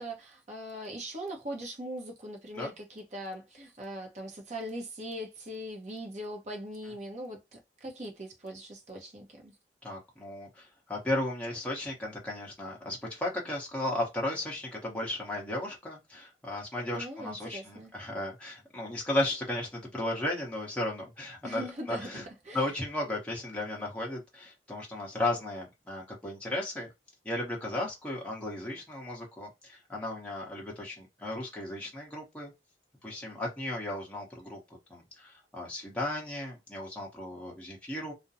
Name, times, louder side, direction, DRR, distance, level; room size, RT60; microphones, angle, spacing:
voice 1, 0.0-9.5 16.9-17.9 21.4-22.1 22.4-22.7, right 1 dB, 40° right, 0.8 m, -40 dB
voice 2, 9.8-22.3 22.5-26.9 27.2-32.5 33.0-34.6 34.9-38.1, left 1 dB, 5° left, 0.8 m, -35 dB
2.5 x 2.1 x 2.6 m
head